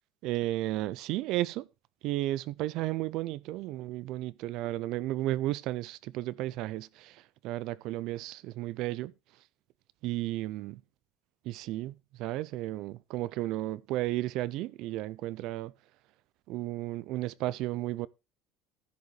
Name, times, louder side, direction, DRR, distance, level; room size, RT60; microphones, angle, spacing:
voice 1, 0.2-1.7 2.0-9.1 10.0-10.8 11.4-15.7 16.5-18.1, right 16 dB, 60° right, 0.5 m, -33 dB
14.5 x 5.2 x 4.8 m
cardioid pair, 155°, 0 cm